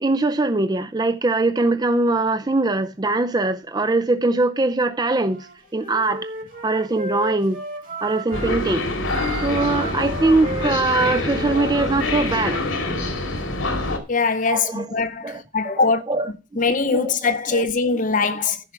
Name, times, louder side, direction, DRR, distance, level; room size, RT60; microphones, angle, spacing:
voice 1, 0.0-5.4 5.7-6.3 6.6-7.6 8.0-8.8 9.4-12.6 14.5-14.9 15.2-15.4 15.8-16.3 16.9-17.1 17.5-17.6 18.3-18.4, right 2 dB, 20° right, 0.5 m, -21 dB
Wind instrument woodwind instrument, 5.2-8.6 9.0-12.7, right 2 dB, 45° right, 2.1 m, -34 dB
sound 1, 8.3-14.0, left 2 dB, 80° left, 2.2 m, -25 dB
voice 2, 14.1-16.0 16.6-18.7, left 4 dB, 40° left, 0.7 m, -22 dB
10.5 x 5.6 x 5.8 m
head